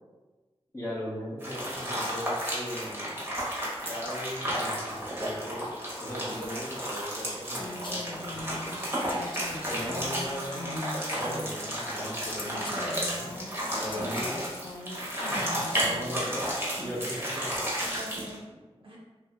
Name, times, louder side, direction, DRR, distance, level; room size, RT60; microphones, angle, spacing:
voice 1, 0.7-3.2 3.9-8.7 9.7-10.7 11.1-13.3 13.7-14.5 15.3-16.5 16.8-17.6, equal, 25° left, -7 dB, 0.8 m, -38 dB
sound 1, 1.4-18.4, equal, 20° right, 1.1 m, -33 dB
Female speech woman speaking, 7.5-11.8 12.4-16.4, left 2 dB, 50° left, 0.4 m, -40 dB
voice 2, 15.7-16.1 17.8-19.0, right 1 dB, 55° right, -4 dB, 0.5 m, -46 dB
3.0 x 2.7 x 2.3 m, 1.2 s
wide cardioid pair, 55°, 11 cm